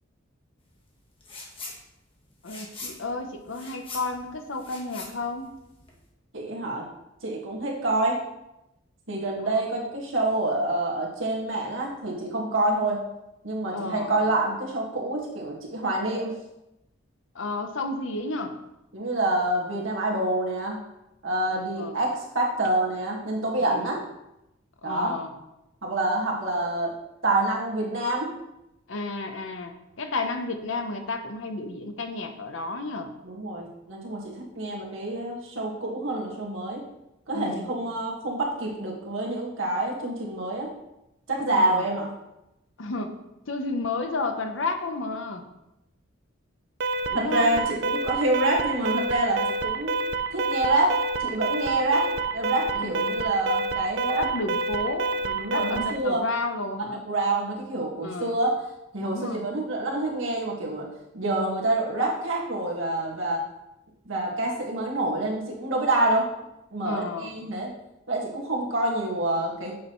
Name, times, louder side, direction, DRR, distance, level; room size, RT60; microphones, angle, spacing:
sound 1, 1.2-1.8 2.1-6.0, left 3 dB, 25° left, 1.3 m, -42 dB
voice 1, 2.4-5.5 9.4-9.5 13.7-14.2 17.3-18.6 21.5-22.0 23.6-23.9 24.8-25.3 28.9-33.1 37.3-37.8 41.6-41.9 42.8-43.2 43.5-45.4 47.1-47.6 52.7-53.2 54.1-55.1 55.5-57.0 58.0-58.4 59.0-59.5 66.8-67.3, left 3 dB, 75° left, 6 dB, 0.9 m, -32 dB
voice 2, 6.3-6.9 7.2-8.2 9.1-13.0 13.4-16.3 18.9-20.8 21.2-24.0 24.8-25.1 25.8-26.9 27.2-28.3 33.2-36.8 37.3-40.7 41.3-42.1 47.1-50.0 50.3-52.1 52.3-54.3 55.2-56.2 56.8-58.6 58.9-60.9 61.1-63.4 64.1-66.3 66.7-67.7 68.1-69.7, right 2 dB, 75° right, -2 dB, 1.9 m, -27 dB
Alarm, 46.8-56.0, right 3 dB, 55° right, 0.5 m, -28 dB
8.2 x 6.5 x 3.2 m, 0.90 s
head